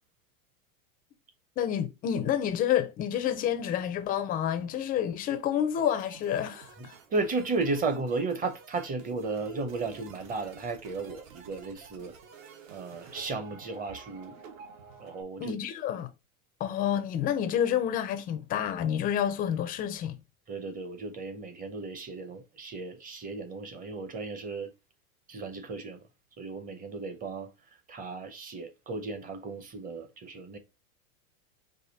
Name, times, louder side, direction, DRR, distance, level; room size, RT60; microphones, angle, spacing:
voice 1, 1.6-6.9 15.4-16.1 16.6-20.2, left 9 dB, 20° left, 0.4 m, -29 dB
sound 1, 5.8-15.2, right 6 dB, 65° right, 1.4 m, -51 dB
voice 2, 7.1-12.1 12.7-14.3 15.0-15.5 20.5-24.7 25.3-26.0 26.4-27.5 27.9-30.6, right 3 dB, 20° right, 0.7 m, -34 dB
4.9 x 2.7 x 4.0 m
supercardioid pair, 135°, 44 cm